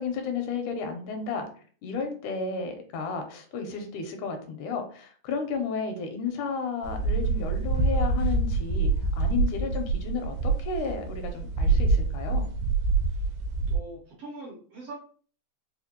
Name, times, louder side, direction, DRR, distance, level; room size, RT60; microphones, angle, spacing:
voice 1, 0.0-1.5 1.8-8.9 9.2-12.5, left 5 dB, 80° left, 4 dB, 2.1 m, -33 dB
sound 1, 6.8-13.8, right 3 dB, 90° right, 2.1 m, -26 dB
voice 2, 13.7-14.9, right 2 dB, 65° right, -3 dB, 1.6 m, -43 dB
5.0 x 2.3 x 2.8 m, 0.44 s
omnidirectional pair, 3.6 m